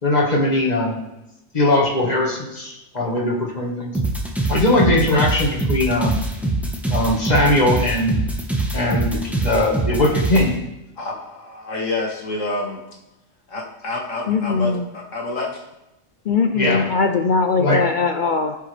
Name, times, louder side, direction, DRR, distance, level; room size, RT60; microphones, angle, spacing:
voice 1, 0.0-1.0 1.5-3.9 4.5-6.2 6.9-8.2 8.7-10.5 16.5-16.9 17.6-17.8, left 1 dB, 35° left, -1 dB, 1.7 m, -20 dB
sound 1, 3.9-10.5, right 2 dB, ahead, 1.1 m, -23 dB
voice 2, 11.0-12.8 13.5-15.6, left 2 dB, 80° left, -2 dB, 2.1 m, -28 dB
voice 3, 14.3-14.8 16.3-18.6, left 4 dB, 60° left, 6 dB, 0.5 m, -20 dB
14.5 x 5.6 x 3.3 m, 0.94 s
omnidirectional pair, 1.3 m